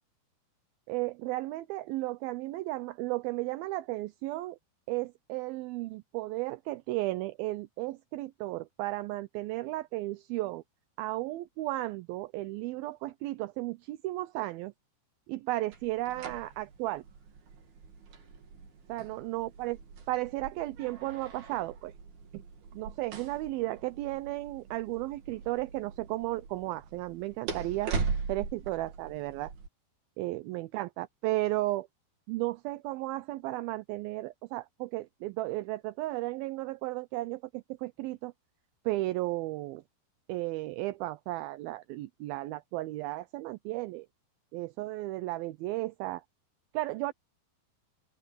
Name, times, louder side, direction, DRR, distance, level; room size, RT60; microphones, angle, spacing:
voice 1, 0.9-4.6 4.9-10.6 11.0-14.7 15.3-17.0 18.9-19.8 20.1-21.9 22.3-22.4 22.7-27.9 28.3-29.5 30.2-31.9 32.3-38.3 38.9-39.8 40.3-44.1 44.5-46.2 46.7-47.1, right 18 dB, 80° right, 2.2 m, -34 dB
sound 1, 15.7-29.7, right 5 dB, 60° right, 4.9 m, -41 dB
open air
omnidirectional pair, 4.9 m